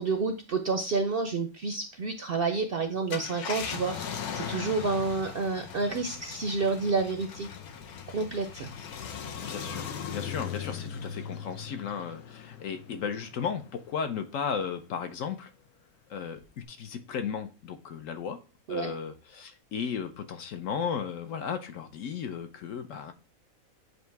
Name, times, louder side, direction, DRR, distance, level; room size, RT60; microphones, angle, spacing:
voice 1, 0.0-7.5 8.1-8.7 18.7-18.9, right 4 dB, 60° right, 7 dB, 0.6 m, -29 dB
Car, 2.9-13.8 14.3-14.4 16.4-16.6, left 7 dB, 85° left, 1.3 m, -39 dB
voice 2, 9.4-15.5 16.1-18.4 18.7-23.1, left 7 dB, 65° left, 8 dB, 1.0 m, -35 dB
8.0 x 2.7 x 4.6 m, 0.32 s
omnidirectional pair, 1.5 m